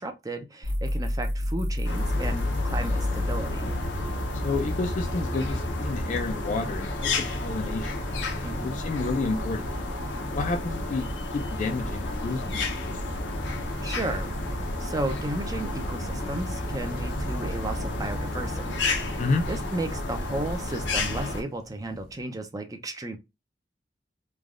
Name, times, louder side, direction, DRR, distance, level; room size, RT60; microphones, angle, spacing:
voice 1, 0.0-3.7 8.4-8.8 13.8-23.2, right 2 dB, 20° right, 0.5 m, -34 dB
sound 1, 0.6-6.2, left 1 dB, 85° right, 1.1 m, -30 dB
sound 2, 1.8-21.4, left 2 dB, 90° left, 0.7 m, -31 dB
voice 2, 4.4-7.9 8.6-9.7 10.3-11.1 11.3-13.0 19.2-19.4, left 3 dB, 45° left, 0.4 m, -30 dB
sound 3, 16.8-22.2, right 1 dB, 50° right, 1.0 m, -47 dB
3.3 x 2.2 x 2.4 m
head